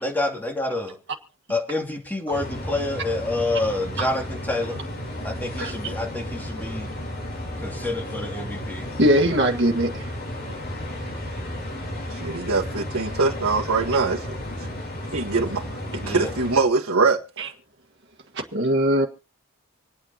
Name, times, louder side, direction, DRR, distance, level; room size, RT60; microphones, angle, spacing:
voice 1, 0.0-1.0 1.5-4.8 5.2-6.9 7.6-8.9 16.0-16.3, left 2 dB, 10° left, 2.6 m, -28 dB
sound 1, 2.3-16.6, left 1 dB, 45° left, 3.8 m, -33 dB
voice 2, 9.0-10.1 17.4-17.5 18.4-19.1, equal, 55° right, 1.7 m, -21 dB
voice 3, 12.1-14.2 15.1-15.7 15.9-17.2, right 4 dB, 90° right, 1.6 m, -22 dB
27.0 x 9.1 x 2.9 m
head